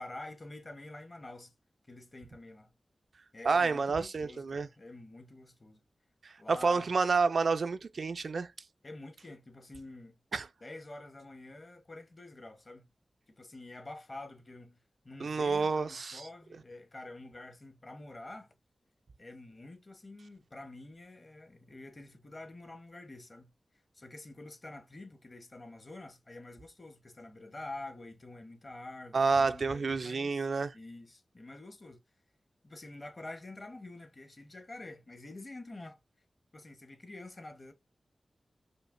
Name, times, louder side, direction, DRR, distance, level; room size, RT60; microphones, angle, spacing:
voice 1, 0.0-1.5 1.9-2.7 3.3-5.8 6.4-6.9 8.8-10.2 10.6-12.9 13.3-18.5 19.2-23.5 23.9-30.5 30.7-32.0 32.6-36.0 36.5-37.7, left 2 dB, 45° left, 1.0 m, -48 dB
voice 2, 3.4-4.7 6.5-8.5 10.3-10.5 15.2-16.2 29.1-30.7, right 4 dB, 75° right, 0.3 m, -29 dB
5.1 x 2.1 x 2.5 m
cardioid pair, 55°, 0 cm